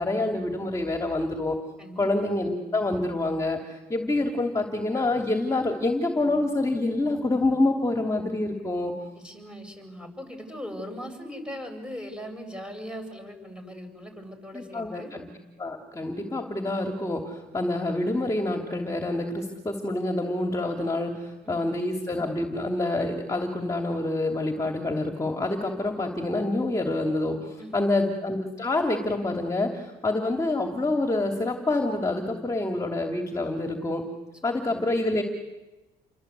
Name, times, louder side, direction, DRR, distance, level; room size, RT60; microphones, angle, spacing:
voice 1, 0.0-1.6 2.0-8.9 14.5-15.3 15.6-34.0 34.4-35.2, left 2 dB, 20° left, 3 dB, 2.9 m, -27 dB
voice 2, 1.8-2.1 9.1-15.1 21.4-21.7 27.6-27.9 34.4-34.9, equal, 5° right, 5 dB, 7.7 m, -40 dB
29.5 x 24.0 x 8.3 m, 1.1 s
cardioid pair, 110°, 17 cm